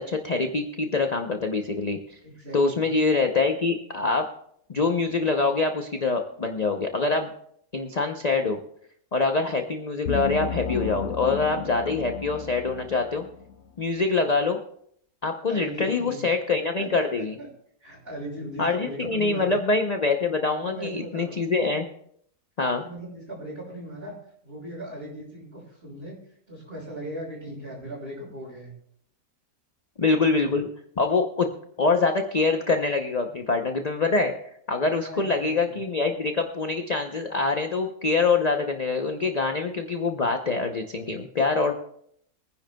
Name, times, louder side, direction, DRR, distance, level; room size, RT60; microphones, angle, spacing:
voice 1, 0.0-2.2 2.5-4.3 4.7-7.3 7.7-8.6 9.1-13.3 13.8-14.6 15.2-17.4 18.6-21.8 22.6-22.8 30.0-30.7 31.0-31.5 31.8-34.3 34.7-41.7, left 3 dB, 45° left, 4 dB, 0.5 m, -25 dB
voice 2, 2.2-2.8 15.5-16.2 16.8-16.9 17.2-17.5 17.8-19.6 20.6-21.5 22.8-24.1 24.4-26.2 26.5-28.7 35.0-35.7, equal, 35° right, -4 dB, 6.0 m, -38 dB
sound 1, 10.1-13.6, left 6 dB, 60° left, 1.0 m, -33 dB
23.5 x 10.0 x 2.3 m, 0.66 s
omnidirectional pair, 1.7 m